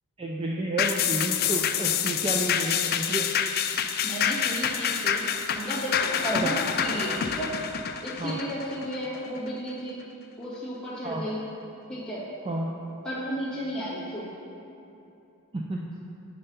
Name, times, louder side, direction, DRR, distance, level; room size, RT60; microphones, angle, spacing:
voice 1, 0.2-3.3 6.3-6.5 8.2-8.4 11.0-11.2 12.5-12.7 15.5-15.8, right 2 dB, 25° right, -1 dB, 0.4 m, -30 dB
sound 1, 0.8-9.5 9.9-10.0, left 8 dB, 45° left, 0.3 m, -27 dB
voice 2, 4.0-7.6 8.0-10.0 10.4-11.5 11.9-12.2 13.0-14.3, equal, 5° left, -9 dB, 1.9 m, -33 dB
7.8 x 5.5 x 5.5 m, 2.8 s
head